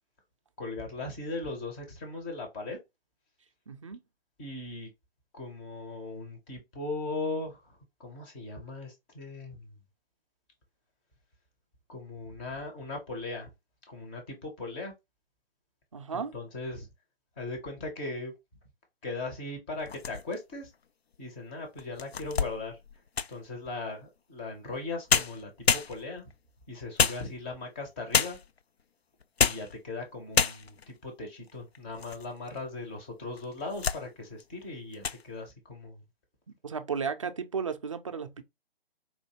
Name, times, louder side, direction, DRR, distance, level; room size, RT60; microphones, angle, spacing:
voice 1, 0.6-2.8 4.4-4.9 5.3-9.7 11.9-13.5 13.9-14.9 16.1-16.9 17.4-18.3 19.0-20.7 21.2-22.8 23.3-26.3 26.7-28.4 29.4-36.0, left 3 dB, 10° left, 0.6 m, -38 dB
voice 2, 3.7-4.0 15.9-16.3 36.6-38.4, right 6 dB, 35° right, 0.4 m, -34 dB
sound 1, 19.8-20.5 21.1-21.2 21.8-23.5 24.7-24.8 25.1-26.3 27.0-27.7 28.1-28.6 29.2-29.7 30.0-30.1 30.3-30.9 31.5-32.3 32.6-32.7 33.4-34.0 34.4-34.6 34.9-35.2, left 6 dB, 90° left, 0.5 m, -28 dB
4.2 x 2.7 x 2.8 m
figure-of-eight pair, 140°, 30 cm